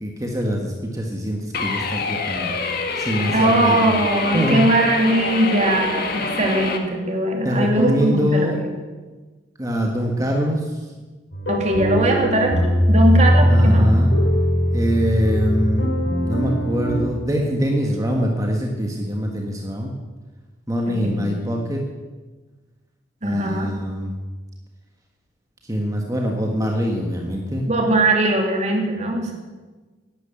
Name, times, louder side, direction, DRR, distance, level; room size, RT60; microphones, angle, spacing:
voice 1, 0.0-3.9 4.3-4.7 7.4-8.6 9.6-10.9 13.3-14.1 14.7-19.9 20.7-21.8 23.2-24.2 25.6-27.7, equal, 20° right, 1 dB, 1.6 m, -24 dB
sound 1, 1.5-6.8, left 4 dB, 60° left, 1.7 m, -26 dB
voice 2, 3.3-8.5 11.5-13.9 20.9-21.2 23.2-23.7 27.7-29.3, right 1 dB, 40° right, 1 dB, 2.8 m, -20 dB
sound 2, 11.3-17.0, equal, 85° left, 4.3 m, -19 dB
12.0 x 10.5 x 9.0 m, 1.3 s
head